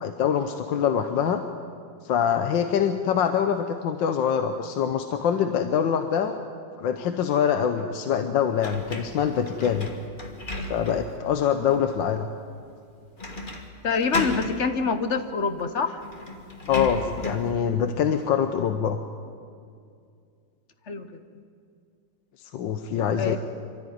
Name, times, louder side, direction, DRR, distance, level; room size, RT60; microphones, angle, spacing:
voice 1, 0.0-1.4 2.0-6.4 6.8-9.9 10.7-12.3 16.7-19.0 22.4-23.4, left 8 dB, 75° left, 7 dB, 1.5 m, -24 dB
sound 1, 8.6-11.2 11.7-11.8 13.2-13.7 13.9-14.6 15.6-15.7 16.0-17.5, left 2 dB, 25° left, 1.7 m, -34 dB
voice 2, 13.8-16.0 20.9-21.1 23.2-23.4, left 5 dB, 45° left, 9 dB, 1.1 m, -25 dB
24.5 x 13.5 x 9.4 m, 2.3 s
omnidirectional pair, 2.0 m